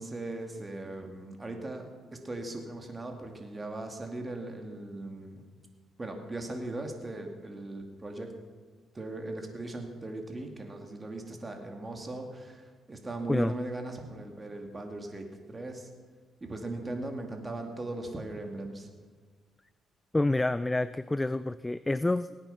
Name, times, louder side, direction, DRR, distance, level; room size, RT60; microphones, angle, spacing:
voice 1, 0.0-5.5 6.0-8.3 8.9-15.9 16.4-18.9, right 2 dB, 25° right, 3 dB, 2.3 m, -39 dB
voice 2, 20.1-22.4, left 2 dB, 15° left, 15 dB, 0.3 m, -28 dB
18.5 x 9.0 x 5.7 m, 1.5 s
cardioid pair, 90°, 0 cm